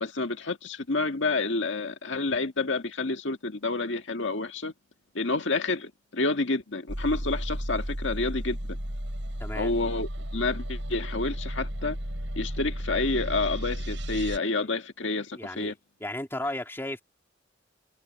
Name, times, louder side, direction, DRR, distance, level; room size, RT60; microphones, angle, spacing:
voice 1, 0.0-4.7 5.2-8.6 9.5-12.0 12.4-15.7, left 3 dB, 75° left, 1.8 m, -29 dB
sound 1, 6.9-14.4, equal, 70° right, 7.9 m, -33 dB
voice 2, 9.4-9.7 14.5-14.7 15.3-15.7 16.0-17.0, left 1 dB, 10° left, 3.1 m, -34 dB
head